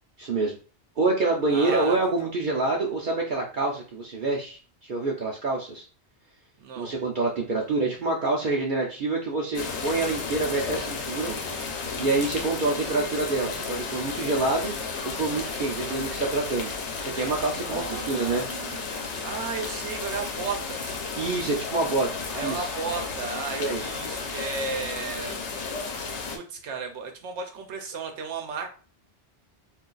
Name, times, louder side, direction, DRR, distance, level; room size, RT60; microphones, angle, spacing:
voice 1, 0.2-0.6 1.0-5.9 6.8-14.8 15.0-16.7 17.0-18.4 21.2-22.1 22.4-22.6 23.6-23.8, right 3 dB, 55° right, -1 dB, 0.6 m, -27 dB
voice 2, 1.5-2.3 6.6-6.9 17.7-21.0 22.3-25.5 26.3-28.7, right 5 dB, 85° right, 4 dB, 0.9 m, -34 dB
sound 1, 9.5-26.4, left 4 dB, 90° left, 1.0 m, -33 dB
2.5 x 2.3 x 3.8 m, 0.38 s
omnidirectional pair, 1.1 m